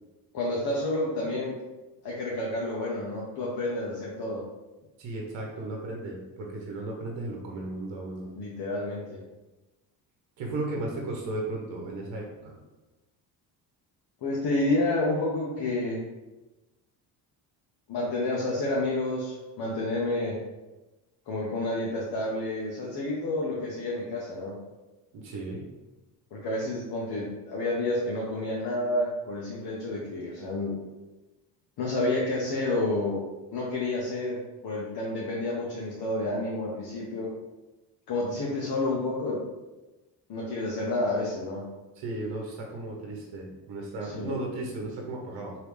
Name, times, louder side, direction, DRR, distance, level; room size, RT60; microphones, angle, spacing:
voice 1, 0.3-1.6 2.0-4.4 8.4-9.2 14.2-16.0 17.9-20.4 21.3-24.6 26.3-30.7 31.8-33.2 33.5-34.4 34.6-37.3 38.1-39.4 40.3-41.7 44.0-44.3, left 2 dB, 55° left, -4 dB, 0.9 m, -29 dB
voice 2, 5.0-8.3 10.4-12.5 25.1-25.7 42.0-45.6, right 2 dB, 65° right, 0 dB, 0.9 m, -35 dB
3.2 x 2.8 x 3.1 m, 1.1 s
supercardioid pair, 65°, 47 cm